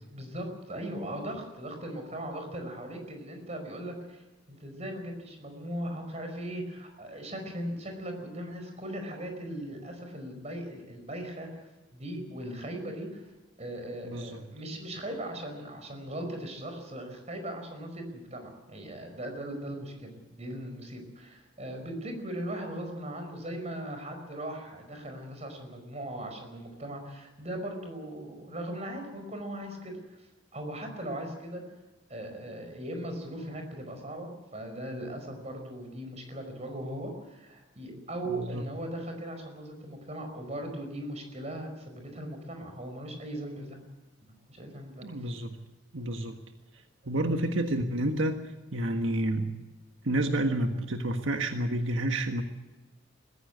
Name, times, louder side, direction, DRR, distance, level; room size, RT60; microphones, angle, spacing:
voice 1, 0.1-13.3 13.6-30.3 30.5-31.6 32.1-43.8 44.5-45.3, right 1 dB, 35° right, 5 dB, 5.1 m, -39 dB
voice 2, 14.0-14.4 38.4-38.6 45.0-45.6 45.9-46.4 47.0-48.4 48.7-49.6 50.0-52.4, right 1 dB, 85° right, 5 dB, 1.6 m, -29 dB
21.5 x 15.5 x 8.1 m, 1.1 s
head